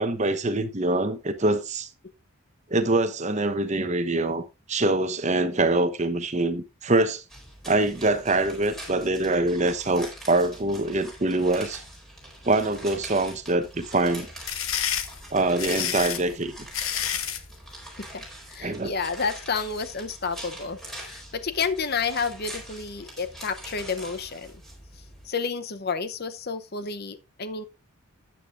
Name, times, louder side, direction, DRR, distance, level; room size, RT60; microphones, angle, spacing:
voice 1, 0.0-1.9 2.7-7.2 7.6-11.8 12.4-14.3 15.3-16.5 18.6-18.9, right 2 dB, 35° right, 0.9 m, -24 dB
sound 1, 7.3-25.3, right 1 dB, ahead, 4.1 m, -43 dB
sound 2, 14.2-17.5, left 9 dB, 80° left, 1.2 m, -29 dB
voice 2, 18.5-24.5 25.2-27.6, left 5 dB, 50° left, 0.7 m, -30 dB
13.5 x 8.7 x 2.5 m
head